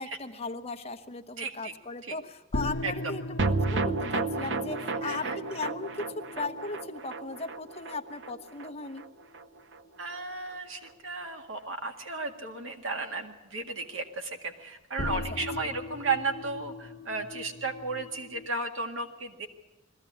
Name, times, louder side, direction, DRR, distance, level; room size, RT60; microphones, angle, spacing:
voice 1, 0.0-9.0 15.1-15.7, left 3 dB, 30° left, 8 dB, 1.0 m, -38 dB
voice 2, 1.4-1.7 2.1-2.2 2.8-2.9 5.0-5.4 10.0-19.5, right 3 dB, 85° right, 5 dB, 1.9 m, -34 dB
sound 1, 2.5-9.2 15.0-18.5, left 1 dB, 75° left, 0.9 m, -39 dB
sound 2, 3.4-9.8 10.1-10.2 10.5-10.6, right 3 dB, 65° right, 0.7 m, -32 dB
21.0 x 15.0 x 8.5 m, 1.1 s
head